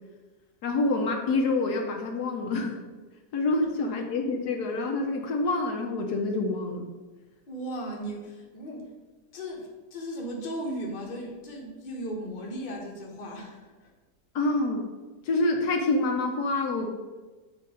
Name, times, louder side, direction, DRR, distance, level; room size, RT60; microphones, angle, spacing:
voice 1, 0.6-2.8 3.3-6.8 14.3-14.9 15.3-16.9, left 2 dB, 75° left, 2 dB, 1.2 m, -27 dB
voice 2, 7.5-8.9 9.3-13.9, equal, 35° left, -1 dB, 1.0 m, -36 dB
7.6 x 2.8 x 5.0 m, 1.3 s
omnidirectional pair, 1.8 m